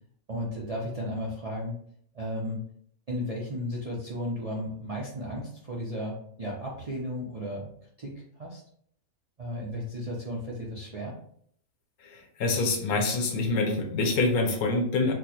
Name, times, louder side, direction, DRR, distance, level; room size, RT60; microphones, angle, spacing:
voice 1, 0.3-1.8 2.1-2.6 3.1-7.7 8.0-8.1 8.4-8.6 9.4-11.2, equal, 50° right, -5 dB, 0.4 m, -34 dB
voice 2, 12.4-15.1, left 3 dB, 80° left, 3 dB, 1.2 m, -25 dB
4.4 x 2.1 x 2.8 m, 0.64 s
omnidirectional pair, 1.5 m